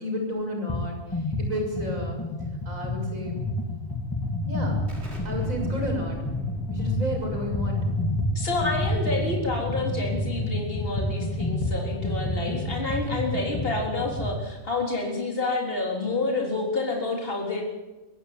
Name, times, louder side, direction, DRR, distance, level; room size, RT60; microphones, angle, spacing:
voice 1, 0.0-2.2 2.7-3.4 4.5-4.8 5.2-6.2 6.7-7.8, left 1 dB, 80° right, 2 dB, 7.0 m, -32 dB
sound 1, 0.7-0.9 1.1-14.4, left 1 dB, 15° left, 2.4 m, -29 dB
Explosion, 4.9-10.3, equal, 50° right, 4.8 m, -43 dB
voice 2, 8.3-17.6, left 2 dB, 45° left, 0 dB, 4.1 m, -28 dB
23.0 x 16.0 x 9.3 m, 1.1 s
omnidirectional pair, 1.4 m